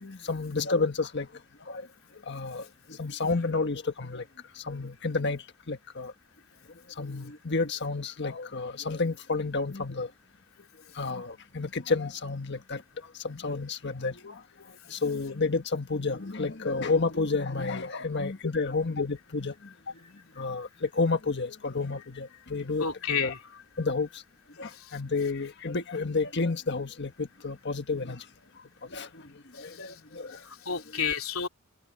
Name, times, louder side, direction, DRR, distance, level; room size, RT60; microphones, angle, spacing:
voice 1, 0.0-1.3 1.7-1.8 2.3-2.6 3.0-4.2 4.7-6.1 7.0-10.1 11.0-12.8 13.2-14.4 14.9-19.5 20.4-23.3 23.8-24.1 24.6-28.2 28.9-29.1 29.6-30.3 30.7-31.0, left 3 dB, 55° left, 1.5 m, -30 dB
voice 2, 22.8-23.4 24.7-24.9 29.6-29.7 30.3-31.5, left 6 dB, 85° left, 2.9 m, -31 dB
head